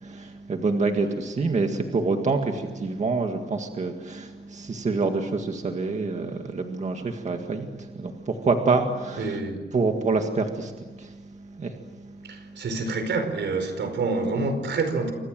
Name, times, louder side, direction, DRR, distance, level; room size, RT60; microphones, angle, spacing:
voice 1, 0.0-9.4 9.7-10.7 11.0-11.1 11.6-11.7, right 3 dB, 40° right, 1.9 m, -26 dB
voice 2, 9.2-9.7 12.2-15.1, right 3 dB, 75° right, 4.8 m, -27 dB
29.5 x 25.5 x 7.7 m
wide cardioid pair, 165°, 19 cm